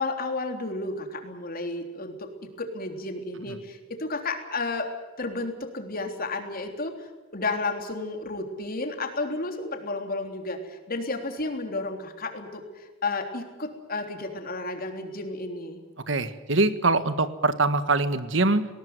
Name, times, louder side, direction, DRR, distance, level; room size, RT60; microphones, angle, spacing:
voice 1, 0.0-2.3 2.6-4.9 5.2-15.8, left 3 dB, 50° left, 5 dB, 3.5 m, -32 dB
voice 2, 16.1-18.7, right 3 dB, 70° right, 12 dB, 1.6 m, -23 dB
19.5 x 19.0 x 9.4 m, 1.3 s
head